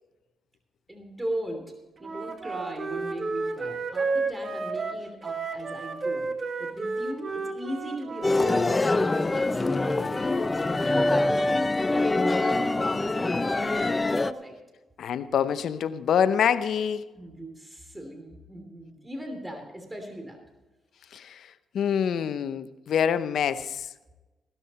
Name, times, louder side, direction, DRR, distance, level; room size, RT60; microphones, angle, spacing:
voice 1, 0.9-1.7 2.0-6.3 6.6-11.5 12.0-14.6 17.1-20.4, equal, 15° right, 4 dB, 3.0 m, -38 dB
Wind instrument woodwind instrument, 2.0-8.6, right 4 dB, 45° right, 1.6 m, -32 dB
sound 1, 8.2-14.3, left 2 dB, 25° left, 0.6 m, -24 dB
voice 2, 15.0-17.1 21.1-23.9, left 8 dB, 70° left, 13 dB, 0.7 m, -26 dB
16.0 x 12.5 x 4.3 m, 1.1 s
cardioid pair, 75°, 0 cm